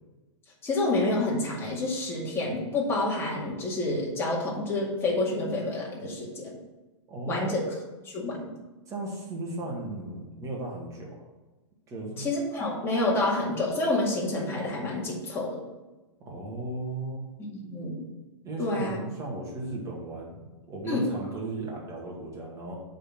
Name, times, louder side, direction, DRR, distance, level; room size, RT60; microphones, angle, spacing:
voice 1, 0.6-6.6 7.3-7.6 8.0-8.4 12.2-15.6 17.5-18.0 18.6-19.0 20.9-21.1, left 2 dB, 15° left, -4 dB, 2.1 m, -28 dB
voice 2, 7.1-7.6 8.9-11.2 11.9-12.3 16.2-17.3 18.4-22.7, right 2 dB, 20° right, -2 dB, 2.1 m, -36 dB
8.0 x 4.2 x 6.2 m, 1.1 s
hypercardioid pair, 145°, 15 cm